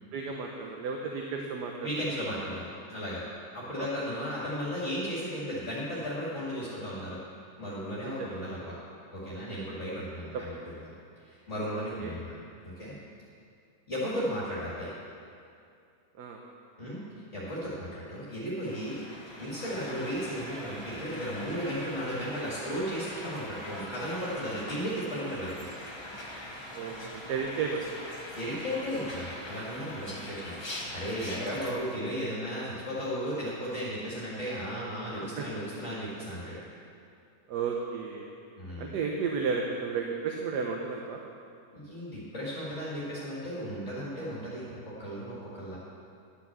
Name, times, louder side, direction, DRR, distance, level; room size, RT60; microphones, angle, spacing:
voice 1, 0.1-1.9 3.8-4.0 8.0-8.4 10.3-10.4 11.7-12.1 16.2-16.4 26.7-27.9 35.4-35.5 37.5-38.3 38.8-41.2, right 5 dB, 80° right, 1 dB, 1.4 m, -33 dB
voice 2, 1.8-3.3 3.5-7.2 7.6-8.8 9.1-10.8 11.2-12.4 12.6-13.0 13.9-14.9 16.8-17.0 17.3-19.0 19.4-25.7 28.4-36.6 38.6-39.0 41.7-45.8, equal, 45° left, -8 dB, 2.4 m, -35 dB
sound 1, 18.6-31.7, left 1 dB, 20° left, 1.1 m, -42 dB
11.5 x 6.1 x 7.3 m, 2.4 s
omnidirectional pair, 1.8 m